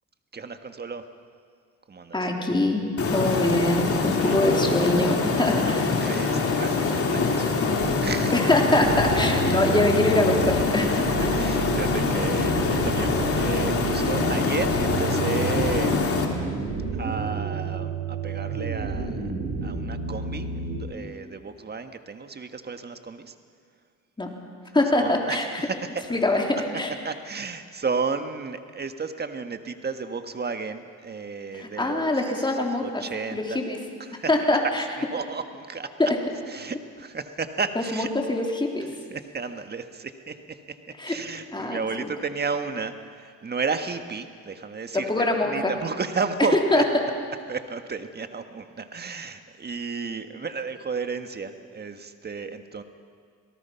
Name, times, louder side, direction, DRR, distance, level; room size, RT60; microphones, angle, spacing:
voice 1, 0.3-1.0 1.9-2.2 4.1-4.4 5.7-8.3 11.3-16.0 17.0-19.3 19.6-23.3 24.9-26.4 27.0-32.5 32.8-33.6 34.0-34.3 35.0-36.1 36.5-38.1 39.1-40.6 41.0-45.1 45.4-46.8 47.5-52.8, right 4 dB, 35° right, 8 dB, 1.6 m, -33 dB
voice 2, 2.1-2.8 3.1-5.8 8.3-11.4 24.2-24.3 24.7-25.7 26.1-26.9 31.5-33.0 33.3-33.8 34.3-34.8 36.0-36.2 37.8-38.9 41.0-41.2 41.5-42.1 44.9-45.7 46.7-46.8, left 2 dB, 15° left, 1 dB, 3.5 m, -24 dB
sound 1, 3.0-16.3, left 4 dB, 50° left, 2.9 m, -24 dB
sound 2, 7.8-20.8, right 4 dB, 75° right, 4.9 m, -30 dB
27.5 x 18.5 x 5.8 m, 2.1 s
cardioid pair, 90°, 30 cm